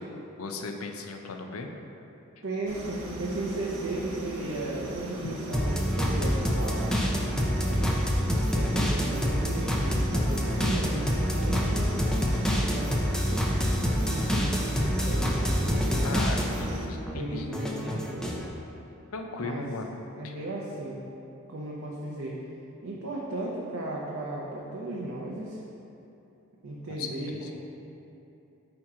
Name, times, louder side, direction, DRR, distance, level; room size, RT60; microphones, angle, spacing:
voice 1, 0.4-1.7 5.2-5.3 16.0-17.5 19.1-19.9 20.2-20.3 26.9-27.1 27.4-27.5, left 3 dB, 75° left, 4 dB, 0.6 m, -36 dB
voice 2, 2.4-6.9 7.6-7.9 8.5-12.0 12.6-13.4 14.0-16.2 16.9-18.5 19.4-19.6 20.2-21.0 21.5-22.4 22.8-25.6 26.6-27.5, right 2 dB, 60° right, -4 dB, 0.7 m, -35 dB
sound 1, 2.7-16.9, right 1 dB, 80° right, 1.0 m, -38 dB
sound 2, 5.5-16.7 17.1-18.4, equal, 5° left, 0.5 m, -27 dB
8.6 x 3.0 x 4.8 m, 2.8 s
head